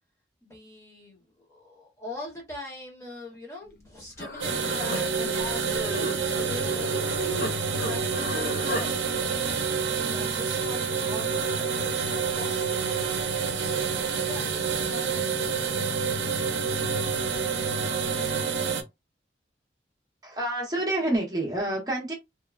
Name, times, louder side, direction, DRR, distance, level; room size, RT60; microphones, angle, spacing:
voice 1, 0.4-7.1 7.7-9.0 9.8-12.8 13.5-16.0, left 2 dB, 15° left, 0.9 m, -42 dB
Human voice, 3.8-3.9 4.2-7.5 7.8-8.9, left 1 dB, 55° left, 0.6 m, -35 dB
sound 1, 4.4-18.8, right 5 dB, 90° right, 0.5 m, -28 dB
voice 2, 20.2-22.1, right 1 dB, 20° right, 0.7 m, -28 dB
3.0 x 2.1 x 2.3 m
head